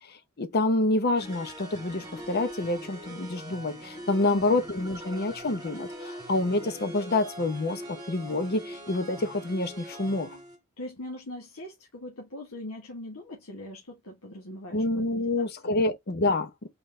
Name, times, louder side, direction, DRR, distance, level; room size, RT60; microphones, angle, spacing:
voice 1, 0.0-10.4 14.7-16.5, left 2 dB, 45° left, 0.7 m, -27 dB
sound 1, 1.2-10.6, equal, 20° right, 2.0 m, -42 dB
voice 2, 10.8-14.8 15.1-15.8, left 1 dB, 80° left, 1.3 m, -41 dB
3.9 x 3.7 x 3.1 m
head